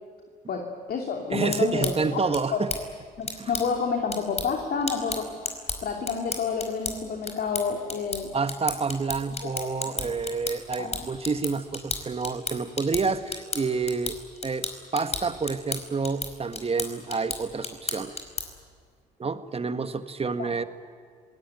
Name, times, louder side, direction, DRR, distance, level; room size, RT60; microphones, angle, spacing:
voice 1, 0.5-2.2 2.5-2.6 3.2-5.4 5.8-8.3 9.4-9.5 9.8-10.1 10.8-11.1 20.4-20.5, left 5 dB, 50° left, 2 dB, 2.9 m, -29 dB
sound 1, 1.3-18.7, left 3 dB, 35° left, 4.9 m, -35 dB
voice 2, 1.3-2.7 3.4-3.5 8.3-14.2 14.4-14.7 14.9-18.2 19.2-20.6, right 4 dB, 30° right, 10 dB, 1.6 m, -28 dB
26.0 x 18.5 x 9.3 m, 2.1 s
hypercardioid pair, 55°, 20 cm